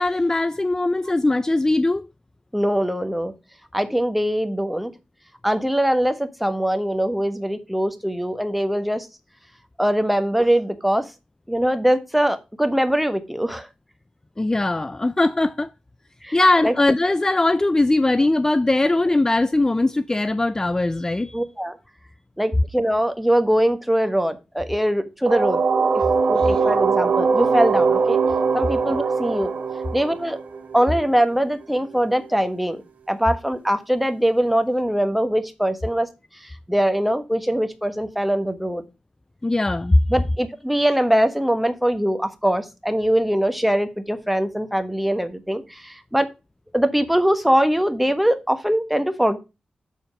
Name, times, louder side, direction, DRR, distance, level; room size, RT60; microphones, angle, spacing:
voice 1, 0.0-2.1 14.4-15.7 16.3-21.4 26.4-26.6 39.4-40.0, left 2 dB, 20° left, 0.3 m, -20 dB
voice 2, 2.5-3.3 3.7-4.9 5.4-9.1 9.8-11.0 11.5-13.7 16.2-16.4 16.6-16.7 21.3-21.8 22.4-25.6 26.3-28.2 28.5-29.5 29.9-30.4 30.7-32.8 33.1-36.1 36.4-38.8 40.1-46.3 46.7-49.4, equal, 5° right, 1.2 m, -22 dB
sound 1, 25.3-31.0, right 5 dB, 70° right, 1.7 m, -21 dB
7.1 x 4.3 x 5.2 m
cardioid pair, 50°, 3 cm